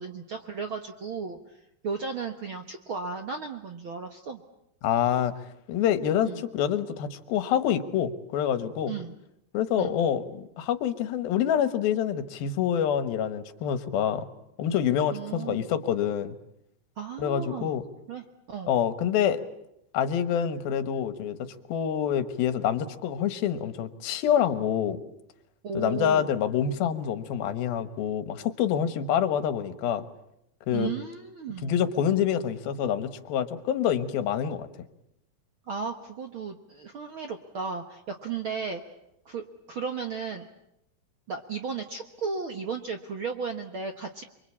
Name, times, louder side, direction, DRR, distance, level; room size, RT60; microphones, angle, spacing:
voice 1, 0.0-1.4 1.8-4.4 6.2-6.4 8.9-9.1 9.8-10.0 15.1-15.7 17.0-17.7 18.1-18.7 25.6-26.3 30.7-31.7 35.7-38.8 39.2-40.5 41.3-44.2, right 5 dB, 60° right, 5 dB, 1.4 m, -35 dB
voice 2, 4.8-5.3 5.7-9.0 9.5-14.3 14.6-16.4 17.2-17.8 18.7-19.4 19.9-21.4 21.7-25.0 25.7-30.1 30.7-30.9 31.6-34.7, left 9 dB, 80° left, 11 dB, 3.2 m, -26 dB
28.5 x 23.0 x 8.6 m, 0.80 s
omnidirectional pair, 4.2 m